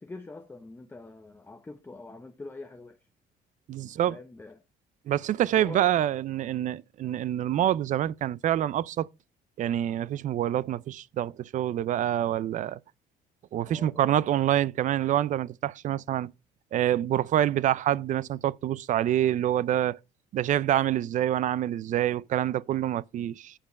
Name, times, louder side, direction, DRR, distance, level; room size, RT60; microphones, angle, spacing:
voice 1, 0.0-3.1 3.8-4.6 5.6-5.9 13.7-14.2, left 3 dB, 15° left, 0.7 m, -44 dB
voice 2, 3.7-4.2 5.1-9.1 9.6-12.8 13.5-16.3 16.7-20.0 20.3-23.5, right 12 dB, 50° right, 0.4 m, -26 dB
8.7 x 5.2 x 5.1 m
cardioid pair, 110°, 17 cm